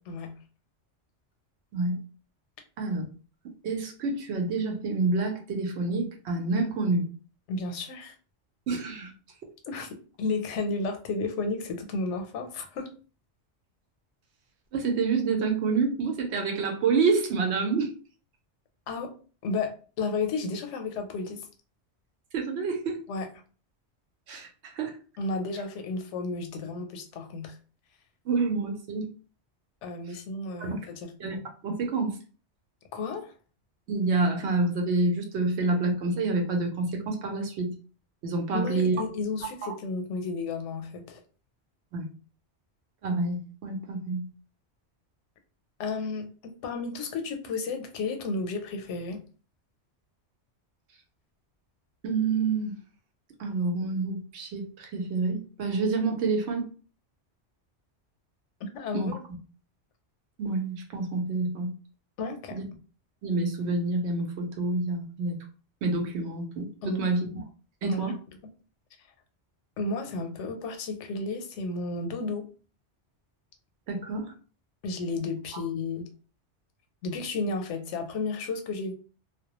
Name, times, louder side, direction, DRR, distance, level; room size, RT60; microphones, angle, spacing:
voice 1, 3.4-7.1 8.7-9.1 14.7-17.9 22.3-23.1 24.3-24.9 28.2-29.1 30.6-30.7 31.2-32.2 33.9-37.7 38.2-39.0 39.6-39.7 41.9-42.1 43.0-44.3 52.0-52.7 53.4-56.7 58.9-59.1 60.4-61.7 62.5-62.6 63.2-65.4 65.8-67.3 67.8-68.2 73.9-74.3 75.5-75.6, right 3 dB, 75° right, 0.9 m, -28 dB
voice 2, 7.5-8.1 9.7-12.9 18.9-19.1 19.4-21.5 23.1-23.3 25.2-27.6 29.8-31.1 32.9-33.3 38.5-41.2 45.8-49.2 58.6-59.2 62.2-62.6 66.8-67.1 67.8-68.1 69.8-72.5 74.8-76.1 77.0-78.9, left 3 dB, 90° left, 0.9 m, -32 dB
2.2 x 2.1 x 2.8 m
omnidirectional pair, 1.2 m